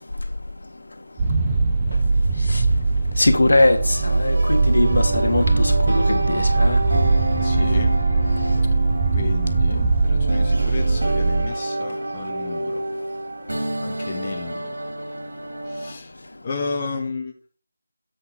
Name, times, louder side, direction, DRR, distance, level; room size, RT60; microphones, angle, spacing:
sound 1, 1.2-11.5, right 3 dB, 15° right, 0.6 m, -20 dB
voice 1, 3.2-6.8, left 2 dB, 85° left, 1.3 m, -20 dB
sound 2, 3.7-15.9, right 1 dB, 70° right, 2.8 m, -29 dB
voice 2, 7.4-8.0 9.1-12.9 13.8-14.8 15.7-16.1 16.4-17.3, left 4 dB, 25° left, 0.9 m, -32 dB
7.9 x 5.7 x 4.0 m
figure-of-eight pair, 170°, 0 cm